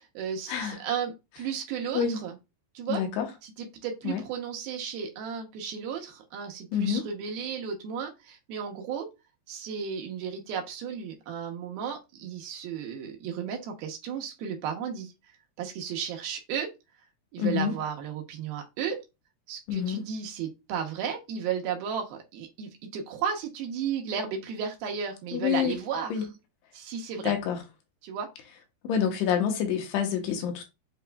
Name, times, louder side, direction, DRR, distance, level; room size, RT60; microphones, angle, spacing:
voice 1, 0.0-2.4 2.7-3.0 3.4-9.1 9.5-15.1 15.6-16.7 17.3-19.0 19.5-26.3 26.7-27.3 28.0-28.3, right 7 dB, 75° right, 2.7 m, -34 dB
voice 2, 2.9-3.3 4.0-4.2 6.7-7.1 17.4-17.8 19.7-20.1 25.3-25.8 26.1-26.2 27.2-27.6 28.8-30.7, left 8 dB, 85° left, 3.0 m, -27 dB
7.7 x 2.9 x 2.2 m
omnidirectional pair, 4.6 m